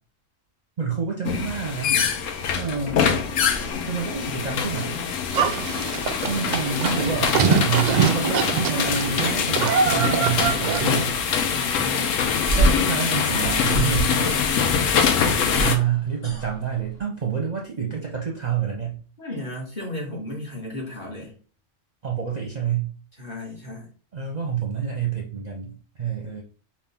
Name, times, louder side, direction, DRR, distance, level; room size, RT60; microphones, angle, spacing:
voice 1, 0.8-1.9 2.5-3.0 3.8-5.0 6.3-11.1 12.5-14.4 15.6-19.0 22.0-22.9 24.1-26.4, right 7 dB, 40° right, 0 dB, 0.7 m, -27 dB
sound 1, 1.2-15.8, left 6 dB, 80° left, 1.0 m, -24 dB
Livestock farm animals working animals, 5.3-11.1, right 6 dB, 85° right, 0.3 m, -24 dB
voice 2, 11.5-12.1 19.2-21.3 23.2-23.9, left 1 dB, 35° left, -3 dB, 1.8 m, -34 dB
sound 2, 12.5-14.8 15.1-17.0, right 2 dB, 65° left, 2.5 m, -25 dB
5.7 x 2.5 x 3.5 m, 0.39 s
omnidirectional pair, 1.3 m